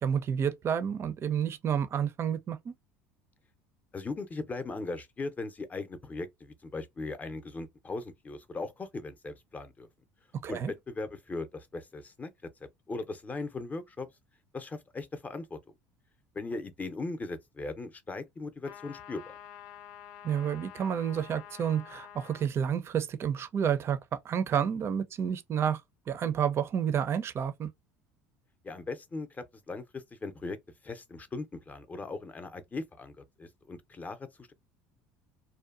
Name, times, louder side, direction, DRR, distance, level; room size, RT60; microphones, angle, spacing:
voice 1, 0.0-2.7 10.3-10.7 20.2-25.8 26.1-27.7, right 8 dB, 40° right, 0.5 m, -30 dB
voice 2, 3.9-9.9 10.5-10.6 10.9-12.3 12.6-14.1 14.5-15.6 16.3-19.4 28.6-30.6 30.8-34.5, left 3 dB, 25° left, 0.6 m, -39 dB
sound 1, 18.6-22.5, left 9 dB, 65° left, 0.6 m, -48 dB
2.6 x 2.2 x 2.4 m
hypercardioid pair, 80°, 6 cm